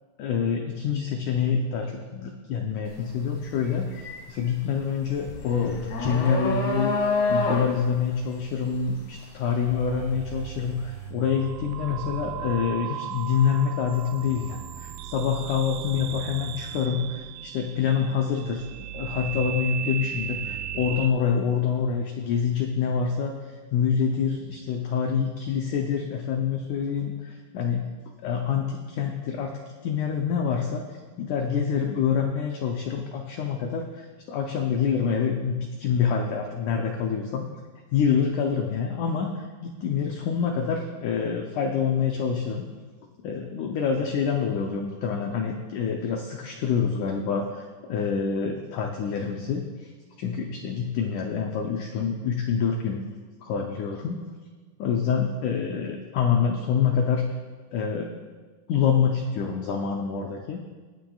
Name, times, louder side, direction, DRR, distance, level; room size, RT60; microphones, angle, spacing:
voice 1, 0.2-6.9 7.3-18.6 18.9-23.3 23.7-27.9 28.2-29.5 29.8-30.9 31.2-37.5 37.9-42.7 43.2-47.6 47.9-49.9 50.2-53.0 53.4-54.2 54.8-57.3 57.7-58.1 58.7-60.6, left 6 dB, 85° left, 2 dB, 1.7 m, -26 dB
sound 1, 2.9-3.1 3.5-10.5, left 2 dB, 55° left, 2.5 m, -28 dB
sound 2, 9.4-21.1, right 11 dB, 90° right, 2.0 m, -37 dB
22.5 x 9.0 x 2.4 m, 1.4 s
omnidirectional pair, 4.5 m